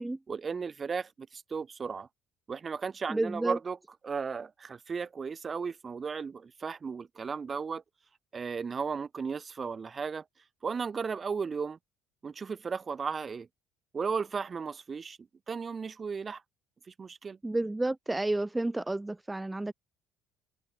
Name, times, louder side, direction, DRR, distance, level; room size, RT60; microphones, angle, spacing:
voice 1, 0.3-2.1 2.5-3.8 4.0-7.8 8.3-10.2 10.6-11.8 12.2-13.5 13.9-15.2 15.5-16.4 16.9-17.4, right 5 dB, 30° right, 3.5 m, -35 dB
voice 2, 3.1-3.6 17.4-19.7, right 2 dB, 10° right, 2.2 m, -31 dB
supercardioid pair, 90°, 0 cm